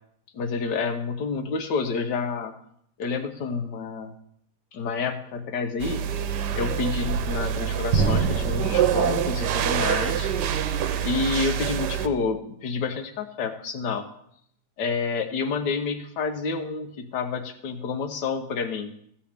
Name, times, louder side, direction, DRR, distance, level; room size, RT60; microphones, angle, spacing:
voice 1, 0.3-2.5 3.0-4.1 4.7-6.0 6.5-10.3 11.0-14.1 14.8-18.9, left 4 dB, 85° left, 6 dB, 1.5 m, -29 dB
sound 1, 5.8-12.1, right 8 dB, 80° right, 1.3 m, -25 dB
14.0 x 7.6 x 3.5 m, 0.67 s
omnidirectional pair, 1.8 m